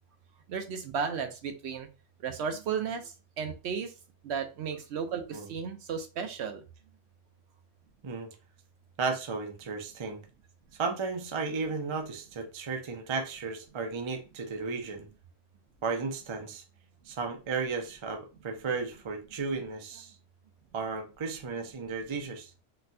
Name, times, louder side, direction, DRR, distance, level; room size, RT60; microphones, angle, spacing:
voice 1, 0.5-1.9 2.2-3.9 4.2-6.6, right 6 dB, 70° right, 0.8 m, -34 dB
voice 2, 9.0-10.2 10.8-15.1 15.8-16.6 17.1-20.2 20.7-22.5, right 4 dB, 40° right, 0.4 m, -34 dB
4.0 x 2.2 x 2.6 m
omnidirectional pair, 1.2 m